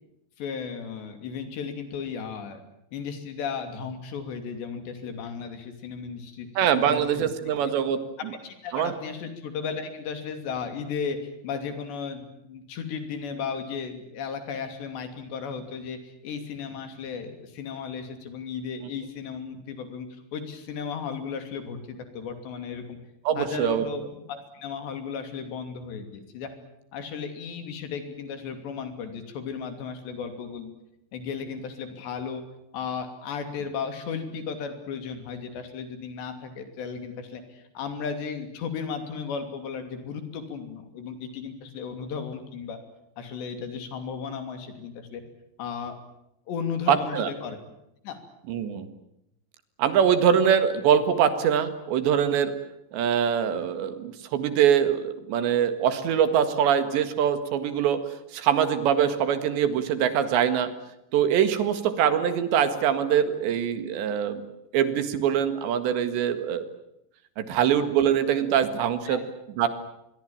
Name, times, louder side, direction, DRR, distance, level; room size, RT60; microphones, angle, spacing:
voice 1, 0.4-2.6 2.9-6.5 6.8-7.5 8.4-23.0 23.4-26.5 26.9-30.7 31.1-32.4 32.7-42.8 43.2-45.2 45.6-46.0 46.5-47.6 48.0-48.2 67.5-67.7 69.1-69.2, left 6 dB, 75° left, 8 dB, 5.0 m, -35 dB
voice 2, 6.6-8.0 8.7-8.9 23.3-23.8 46.9-47.3 48.5-48.9 49.8-52.5 52.9-58.0 58.3-60.7 61.1-64.4 64.7-66.6 67.4-69.2 69.6-69.7, right 8 dB, 75° right, 11 dB, 4.0 m, -23 dB
25.0 x 22.5 x 8.9 m, 0.81 s
omnidirectional pair, 5.1 m